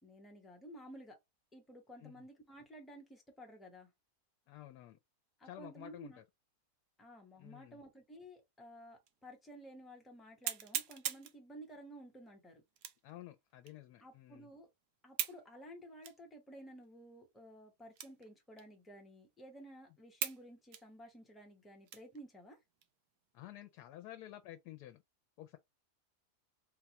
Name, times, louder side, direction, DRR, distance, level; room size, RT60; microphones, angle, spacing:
voice 1, 0.0-1.2 1.5-3.9 5.4-6.2 7.0-12.6 14.0-14.7 15.0-22.6, right 1 dB, ahead, 0.6 m, -54 dB
voice 2, 4.5-5.0 5.4-6.2 7.4-7.8 13.0-14.5 23.3-25.0 25.4-25.6, left 14 dB, 80° left, 1.1 m, -51 dB
sound 1, 9.1-9.2 9.7-9.8 10.4-11.4 12.8-13.1 13.7-13.8 15.2-15.4 16.0-16.2 16.8-16.9 17.9-18.3 18.6-18.7 19.3-19.4 20.2-20.4 20.7-22.2 22.7-22.9 23.4-23.8, right 10 dB, 80° right, 1.1 m, -40 dB
4.0 x 2.3 x 2.9 m
omnidirectional pair, 1.7 m